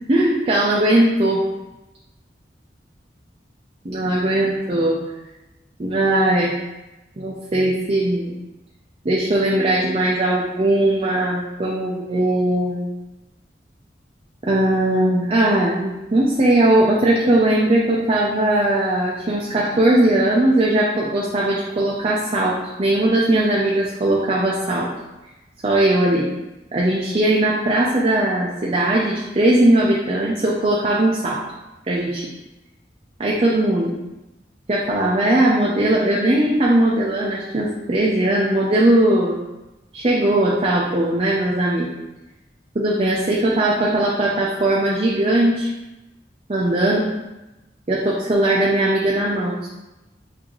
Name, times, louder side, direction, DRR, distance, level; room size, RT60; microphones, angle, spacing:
voice 1, 0.1-1.4 3.8-5.0 5.8-6.5 7.2-8.3 9.0-12.9 14.5-24.9 25.6-26.3 26.7-31.4 31.9-32.3 33.2-33.9 34.7-39.4 39.9-41.9 42.7-45.7 46.5-47.1 47.9-49.7, right 1 dB, 35° right, -4 dB, 0.5 m, -19 dB
6.1 x 2.7 x 3.1 m, 1.0 s
head